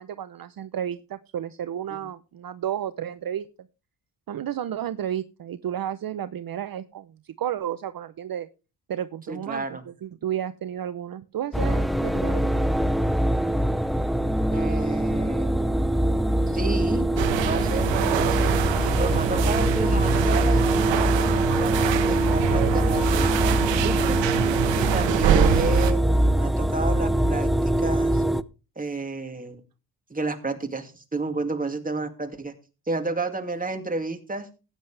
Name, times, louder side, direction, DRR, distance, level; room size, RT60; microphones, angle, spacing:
voice 1, 0.0-3.5 4.3-8.5 8.9-13.0, right 10 dB, 50° right, 12 dB, 0.8 m, -32 dB
voice 2, 9.3-9.8 14.5-15.6 16.5-17.2 17.4-24.2 24.8-28.2 28.8-29.6 30.1-32.5 32.9-34.5, right 3 dB, 20° right, 5 dB, 2.5 m, -31 dB
sound 1, 11.5-28.4, right 1 dB, ahead, 0.6 m, -23 dB
sound 2, 17.2-25.9, right 11 dB, 80° right, 1.2 m, -25 dB
15.5 x 9.7 x 3.4 m, 0.32 s
cardioid pair, 85°, 44 cm